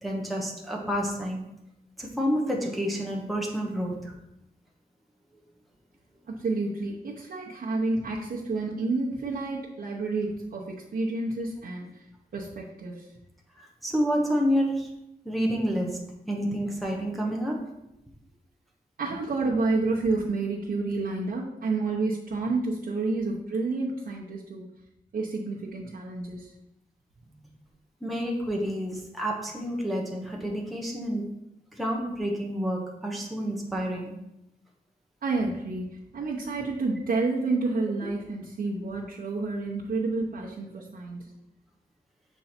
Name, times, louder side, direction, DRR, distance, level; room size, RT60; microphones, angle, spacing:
voice 1, 0.0-1.4 2.0-4.1 13.6-14.9 15.2-17.7 28.0-31.4 31.7-34.1, equal, ahead, -1 dB, 1.0 m, -29 dB
voice 2, 6.3-12.1 12.3-13.1 19.0-24.7 25.1-26.5 35.2-41.3, right 3 dB, 70° right, -5 dB, 0.9 m, -29 dB
6.9 x 4.6 x 4.3 m, 0.84 s
wide cardioid pair, 180°, 16 cm